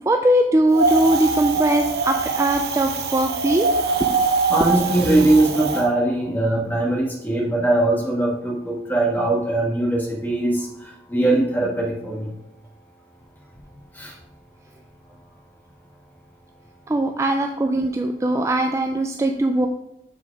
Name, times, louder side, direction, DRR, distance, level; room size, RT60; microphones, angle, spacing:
voice 1, 0.1-3.7 4.0-4.2 4.7-4.9 16.9-19.7, right 1 dB, 15° right, 5 dB, 0.3 m, -20 dB
Wind, 0.7-5.8, right 4 dB, 60° right, 0.8 m, -23 dB
voice 2, 4.5-12.3 13.9-14.1, right 2 dB, 10° left, -2 dB, 1.5 m, -21 dB
7.1 x 4.7 x 4.8 m, 0.87 s
head